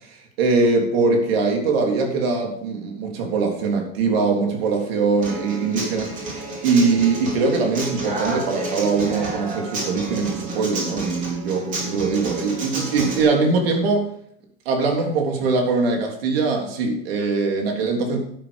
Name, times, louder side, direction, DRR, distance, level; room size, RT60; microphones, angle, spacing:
voice 1, 0.4-14.1 14.7-18.2, right 4 dB, 80° right, 2 dB, 3.6 m, -22 dB
Human voice / Acoustic guitar, 5.2-13.2, right 2 dB, 25° right, 3.7 m, -30 dB
12.5 x 9.1 x 5.3 m, 0.68 s
supercardioid pair, 160°, 29 cm